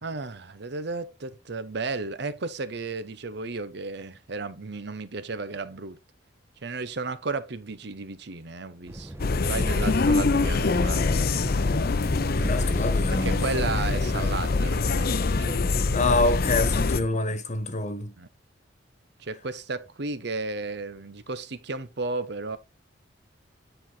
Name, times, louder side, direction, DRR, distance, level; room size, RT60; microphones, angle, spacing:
voice 1, 0.0-6.0 6.6-9.1 9.4-11.2 13.1-15.6 18.2-18.3 19.2-22.6, right 3 dB, 65° right, 0.9 m, -33 dB
sound 1, 8.9-17.1, right 1 dB, 15° right, 1.0 m, -38 dB
sound 2, 9.2-17.0, left 3 dB, 55° left, 0.7 m, -24 dB
voice 2, 12.3-13.4 15.9-18.1, left 2 dB, 40° left, 1.4 m, -26 dB
9.7 x 4.6 x 4.0 m
head